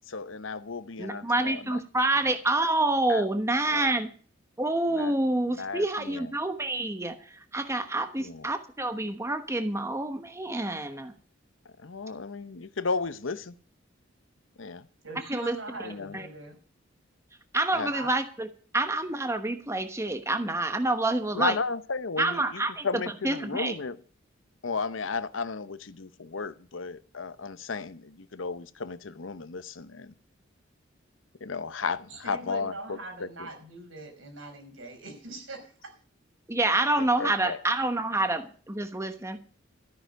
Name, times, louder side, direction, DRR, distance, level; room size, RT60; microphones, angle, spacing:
voice 1, 0.1-1.8 3.1-3.3 3.6-3.9 4.9-5.1 5.5-6.3 8.2-8.5 11.8-13.5 14.6-14.9 15.8-16.2 17.7-17.9 21.3-24.0 24.6-30.1 31.4-33.5 37.0-37.6, left 4 dB, 75° left, 0.9 m, -34 dB
voice 2, 1.0-4.1 4.6-11.1 15.3-15.6 16.1-16.3 17.5-18.5 18.7-21.6 22.2-22.9 23.2-23.7 36.5-39.4, right 2 dB, 15° right, 1.1 m, -27 dB
voice 3, 15.0-16.6 17.9-18.1 32.1-35.9, right 2 dB, 80° right, 5.2 m, -42 dB
13.5 x 9.7 x 6.5 m
head